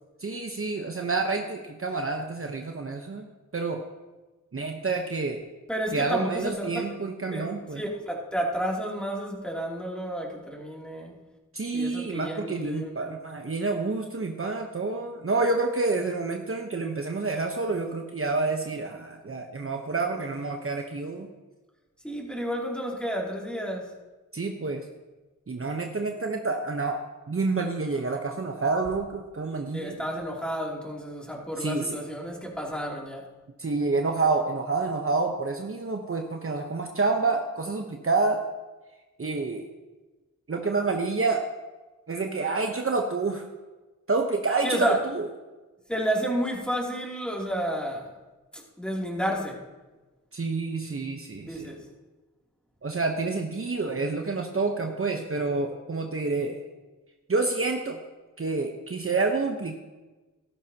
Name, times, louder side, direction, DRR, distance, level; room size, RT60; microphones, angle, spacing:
voice 1, 0.2-3.2 3.5-3.9 4.5-5.4 5.9-7.8 11.5-21.3 24.3-24.8 25.5-30.0 31.6-32.0 33.6-38.4 39.2-39.7 40.5-41.5 42.1-43.5 44.1-45.3 50.3-51.7 52.8-56.6 57.3-58.0 58.4-59.8, right 3 dB, 40° right, 3 dB, 1.0 m, -28 dB
voice 2, 5.7-6.8 7.3-7.5 7.7-11.2 11.7-13.1 22.0-23.9 29.7-33.3 44.6-45.0 45.9-48.1 48.5-49.6 51.5-51.9, equal, 5° left, -3 dB, 2.9 m, -31 dB
15.0 x 13.0 x 2.9 m, 1.2 s
cardioid pair, 55°, 33 cm